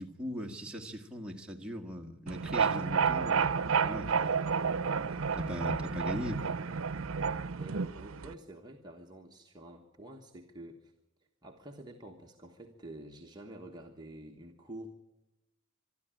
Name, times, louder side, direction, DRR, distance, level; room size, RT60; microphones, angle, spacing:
voice 1, 0.0-4.5 5.1-6.6, equal, 5° right, 1 dB, 1.6 m, -40 dB
sound 1, 2.3-8.3, right 6 dB, 80° right, 0.6 m, -31 dB
voice 2, 7.6-10.9 11.4-14.9, right 1 dB, 20° right, 0 dB, 1.2 m, -48 dB
23.5 x 13.0 x 9.0 m, 0.97 s
head